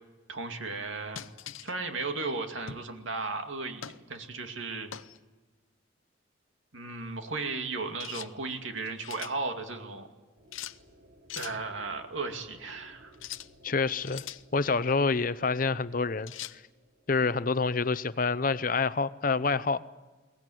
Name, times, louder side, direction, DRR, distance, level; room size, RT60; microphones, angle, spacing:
voice 1, 0.3-1.3 1.6-4.9 6.7-10.1 11.4-13.2, right 3 dB, 85° right, 5 dB, 2.4 m, -35 dB
sound 1, 1.2-1.7 2.7-2.9 3.8-4.0 4.9-5.2 8.0-8.3 8.8-9.4 10.5-10.8 11.3-11.6 13.1-13.5 14.0-14.4 16.3-16.6, left 11 dB, 90° left, 0.7 m, -41 dB
sound 2, 10.4-18.5, right 1 dB, 50° right, 5.5 m, -59 dB
voice 2, 13.6-14.3 14.5-16.3 17.1-19.8, left 4 dB, 45° left, 16 dB, 0.7 m, -27 dB
22.5 x 19.0 x 9.2 m, 1.3 s
head